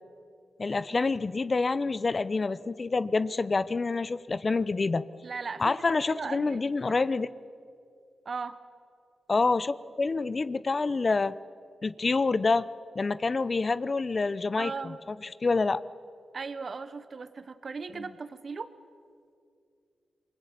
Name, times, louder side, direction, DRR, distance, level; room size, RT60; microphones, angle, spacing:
voice 1, 0.6-5.1 5.6-7.3 9.3-11.4 11.8-12.7 12.9-14.9 15.4-15.8, left 3 dB, 45° left, 15 dB, 0.8 m, -27 dB
voice 2, 5.2-7.0 8.2-8.6 14.6-15.0 16.3-18.7, right 4 dB, 60° right, 11 dB, 1.1 m, -38 dB
27.5 x 19.5 x 8.5 m, 2.4 s
cardioid pair, 50°, 0 cm